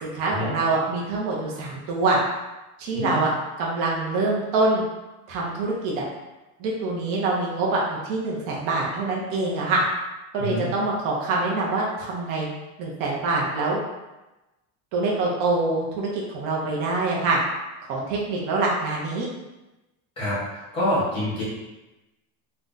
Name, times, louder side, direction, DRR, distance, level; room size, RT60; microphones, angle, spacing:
voice 1, 0.0-2.2 2.8-3.3 3.6-4.8 5.3-6.0 6.6-9.8 10.3-12.5 12.8-13.8 14.9-17.4 17.9-19.3, right 3 dB, 35° right, -3 dB, 0.5 m, -25 dB
voice 2, 20.2-21.4, left 1 dB, 15° left, -7 dB, 0.9 m, -26 dB
2.5 x 2.2 x 3.7 m, 1.0 s
cardioid pair, 175°, 38 cm